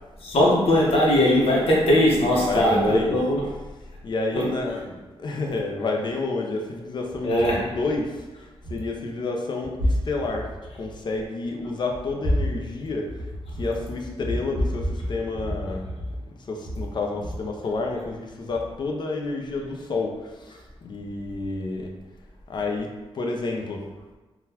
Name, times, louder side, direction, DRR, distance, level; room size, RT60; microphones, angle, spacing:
voice 1, 0.2-3.4 4.3-4.5 7.2-7.7, left 1 dB, 70° left, -3 dB, 0.9 m, -20 dB
voice 2, 2.4-3.2 4.0-8.1 8.7-10.5 10.8-13.1 13.6-15.9 16.5-20.1 20.4-20.5 20.8-21.9 22.5-22.9 23.1-23.8, left 3 dB, 45° left, 1 dB, 0.5 m, -29 dB
3.7 x 2.2 x 2.8 m, 1.2 s
wide cardioid pair, 115°, 10 cm